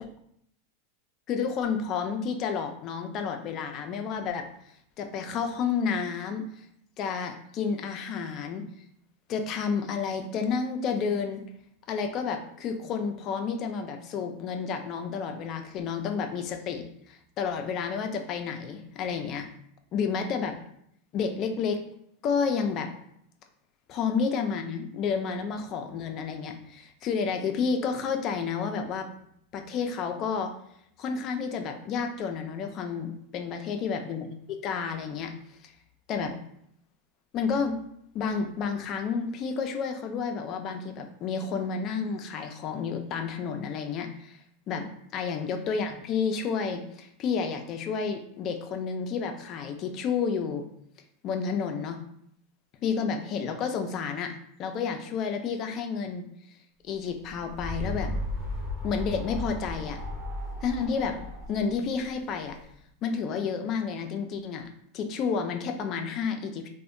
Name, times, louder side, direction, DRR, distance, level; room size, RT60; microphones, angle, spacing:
voice 1, 1.3-4.5 5.0-6.4 7.0-8.6 9.3-11.4 11.9-19.5 19.9-20.5 21.1-21.8 22.2-22.9 23.9-29.1 29.5-30.5 31.0-35.3 35.6-35.7 36.1-36.3 37.3-37.8 38.1-44.4 44.7-44.9 45.1-50.6 51.2-52.0 52.8-54.3 54.6-56.2 56.8-58.1 58.8-60.0 60.6-61.2 61.5-62.6 63.0-64.7 64.9-66.7, left 6 dB, 35° left, 6 dB, 0.3 m, -30 dB
sound 1, 57.1-62.7, left 1 dB, 5° right, 0.7 m, -35 dB
2.6 x 2.1 x 2.5 m, 0.71 s
supercardioid pair, 140°, 0 cm